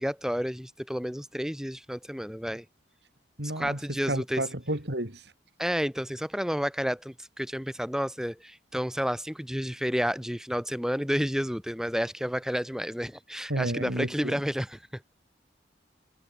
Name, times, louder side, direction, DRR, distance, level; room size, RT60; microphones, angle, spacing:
voice 1, 0.0-2.6 3.6-4.4 5.6-15.0, equal, 5° right, 3.0 m, -31 dB
voice 2, 3.4-5.3 13.5-14.4, right 1 dB, 65° right, 5.4 m, -31 dB
head